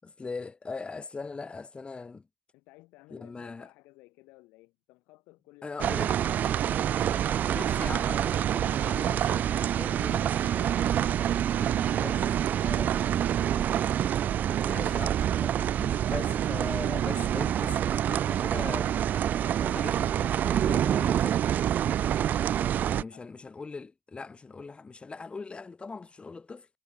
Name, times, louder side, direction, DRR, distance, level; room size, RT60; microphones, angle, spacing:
voice 1, 0.0-2.3 3.1-3.7 5.6-6.2 7.0-11.1 11.6-12.2 12.6-13.2 14.6-18.9 19.6-21.4 22.9-26.7, left 4 dB, 35° left, 3.6 m, -41 dB
voice 2, 2.5-5.9 11.2-13.6 22.0-23.3, left 22 dB, 85° left, 6.4 m, -57 dB
sound 1, 5.8-23.0, right 10 dB, 65° right, 0.4 m, -27 dB
hypercardioid pair, 50°, 3 cm